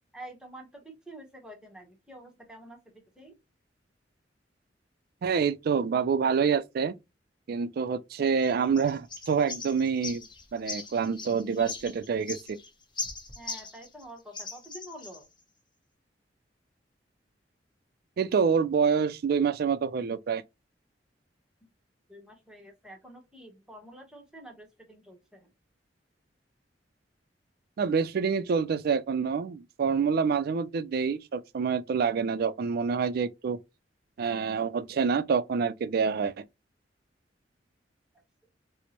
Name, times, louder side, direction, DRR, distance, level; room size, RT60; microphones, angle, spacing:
voice 1, 0.1-3.4 13.4-15.3 22.1-25.5, right 1 dB, 5° right, 0.9 m, -48 dB
voice 2, 5.2-6.9 7.5-12.6 18.2-20.4 27.8-33.6 34.2-36.4, right 6 dB, 55° right, 0.3 m, -27 dB
sound 1, 8.4-14.0 14.3-15.2, left 4 dB, 25° left, 0.9 m, -40 dB
4.3 x 2.0 x 2.8 m
head